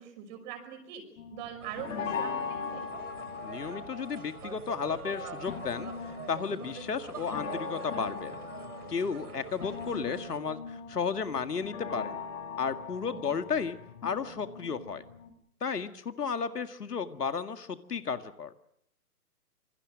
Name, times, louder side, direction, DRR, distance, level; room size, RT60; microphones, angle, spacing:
voice 1, 0.0-2.9 13.1-13.4, right 9 dB, 30° right, 6 dB, 5.5 m, -43 dB
sound 1, 1.2-15.3, left 6 dB, 55° left, 6.3 m, -40 dB
sound 2, 1.6-10.4, right 6 dB, 70° right, 2.7 m, -46 dB
voice 2, 3.4-8.3 8.9-12.2 12.6-13.8 14.0-15.0 15.6-18.5, left 6 dB, 80° left, 9 dB, 2.0 m, -33 dB
26.5 x 23.0 x 6.2 m, 0.75 s
hypercardioid pair, 150°, 46 cm